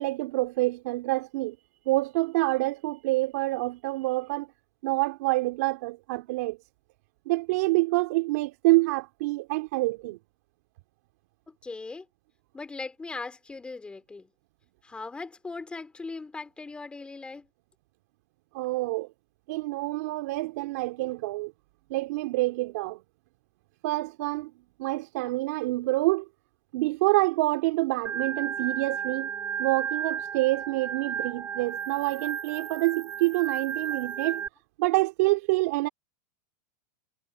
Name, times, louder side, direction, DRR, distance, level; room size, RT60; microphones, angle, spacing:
voice 1, 0.0-1.6 1.8-4.5 4.8-6.6 7.2-10.2 18.5-19.1 19.5-21.5 21.9-23.0 23.8-24.5 24.8-26.2 26.7-29.3 29.6-34.4 34.8-35.9, right 21 dB, 65° right, 3.3 m, -27 dB
voice 2, 11.5-12.1 12.5-14.3 14.8-17.5, left 3 dB, 10° left, 3.9 m, -39 dB
Organ, 28.1-34.5, right 8 dB, 25° right, 5.2 m, -33 dB
hypercardioid pair, 125°, 9 cm